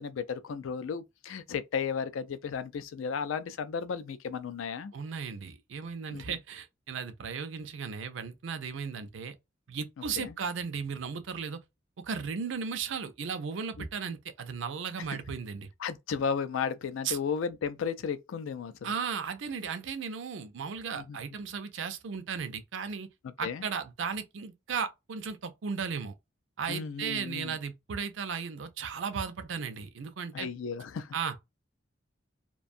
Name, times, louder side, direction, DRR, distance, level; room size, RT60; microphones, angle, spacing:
voice 1, 0.0-4.9 6.1-6.4 10.2-10.4 13.8-13.9 15.1-15.2 15.8-18.9 20.9-21.2 23.2-23.6 26.7-27.6 30.3-31.1, left 6 dB, 90° left, 0.4 m, -34 dB
voice 2, 4.9-9.3 9.7-11.6 12.0-15.7 17.0-17.2 18.8-23.1 23.4-26.1 26.6-30.5 31.1-31.3, right 6 dB, 75° right, 0.5 m, -35 dB
2.5 x 2.2 x 2.5 m
head